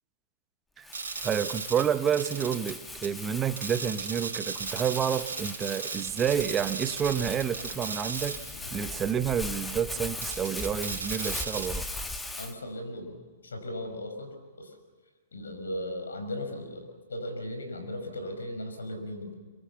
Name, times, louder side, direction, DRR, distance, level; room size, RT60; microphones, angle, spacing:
Crumpling crinkling, 0.8-12.5, left 2 dB, 5° left, 1.5 m, -39 dB
sound 1, 0.9-2.7 3.0-3.1 3.6-8.4 8.7-8.8 10.2-11.7, right 5 dB, 75° right, 4.3 m, -37 dB
voice 1, 1.2-8.4 8.7-11.9, right 8 dB, 20° right, 13 dB, 0.9 m, -29 dB
sound 2, 6.0-11.1, left 7 dB, 50° left, 1.9 m, -49 dB
voice 2, 12.4-14.7 15.3-19.3, left 1 dB, 80° left, 6 dB, 5.5 m, -37 dB
25.5 x 23.0 x 7.1 m, 1.5 s
figure-of-eight pair, 115°, 0 cm